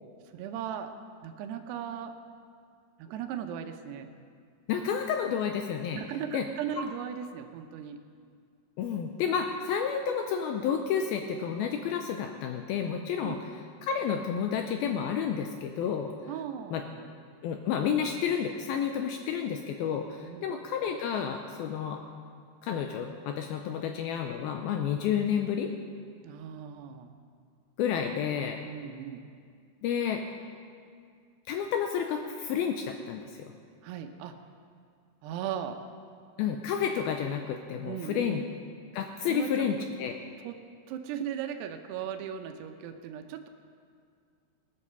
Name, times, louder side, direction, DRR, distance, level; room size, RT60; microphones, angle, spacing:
voice 1, 0.3-0.9 1.2-2.1 3.0-4.1 5.9-8.0 13.2-13.4 16.3-17.1 20.2-20.5 25.0-25.1 26.2-27.1 28.6-29.2 33.8-34.4 35.2-35.8 37.8-38.4 39.2-39.5 40.4-40.6 40.9-43.5, right 8 dB, 80° right, 6 dB, 2.9 m, -37 dB
voice 2, 4.7-6.0 6.3-6.5 6.8-6.9 8.8-13.4 13.8-16.3 16.7-16.8 17.4-22.0 22.6-25.7 27.8-28.6 29.8-30.3 31.5-33.5 36.4-38.4 38.9-40.2, left 7 dB, 85° left, 4 dB, 2.2 m, -30 dB
19.0 x 8.4 x 6.8 m, 2.2 s
omnidirectional pair, 4.9 m